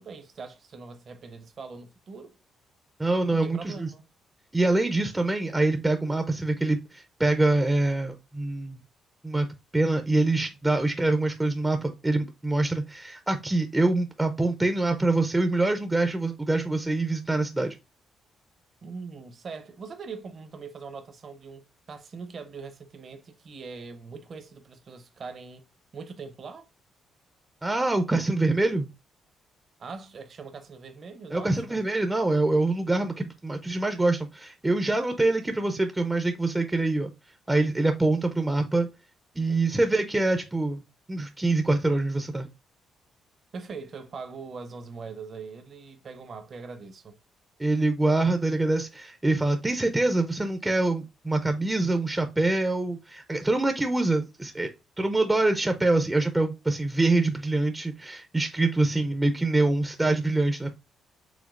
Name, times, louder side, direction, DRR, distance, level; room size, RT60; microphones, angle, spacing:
voice 1, 0.0-2.4 3.3-4.0 18.8-25.6 25.9-26.6 29.8-31.8 39.5-39.6 43.5-47.1, right 4 dB, 50° right, 0.7 m, -41 dB
voice 2, 3.0-3.9 4.5-8.8 9.2-9.5 9.7-17.8 27.6-28.9 31.3-37.1 37.5-38.9 39.4-40.8 41.1-42.5 47.6-54.7 55.0-60.7, right 2 dB, 15° right, 0.5 m, -25 dB
5.0 x 3.4 x 2.4 m
cardioid pair, 90°, 0 cm